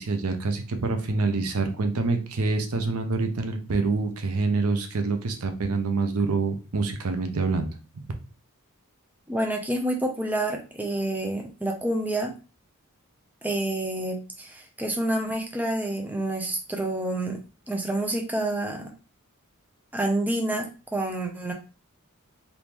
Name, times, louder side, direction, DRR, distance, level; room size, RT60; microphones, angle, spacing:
voice 1, 0.0-7.7, right 3 dB, 75° right, 6 dB, 0.6 m, -26 dB
voice 2, 9.3-12.3 13.4-17.4 17.7-18.9 19.9-21.5, right 1 dB, 10° right, 2 dB, 0.6 m, -28 dB
3.5 x 2.6 x 3.0 m, 0.33 s
head